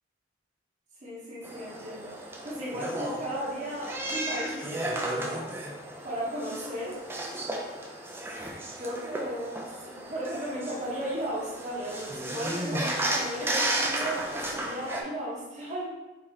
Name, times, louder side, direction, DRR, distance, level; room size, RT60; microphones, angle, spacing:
voice 1, 1.0-5.5 6.0-7.0 8.7-9.6 9.8-15.8, right 1 dB, 35° right, -7 dB, 1.0 m, -35 dB
sound 1, 1.4-15.0, right 1 dB, 10° right, 0.4 m, -34 dB
4.9 x 2.8 x 3.5 m, 1.1 s
head